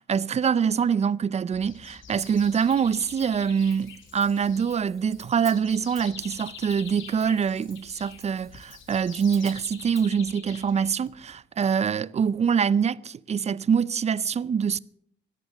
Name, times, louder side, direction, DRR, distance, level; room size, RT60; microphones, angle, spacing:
voice 1, 0.0-14.8, right 7 dB, 35° right, 0.5 m, -25 dB
sound 1, 1.5-11.3, left 7 dB, 75° left, 2.7 m, -46 dB
Hi-hat, 2.2-10.1, equal, ahead, 2.2 m, -53 dB
14.0 x 10.5 x 6.6 m
cardioid pair, 90°, 20 cm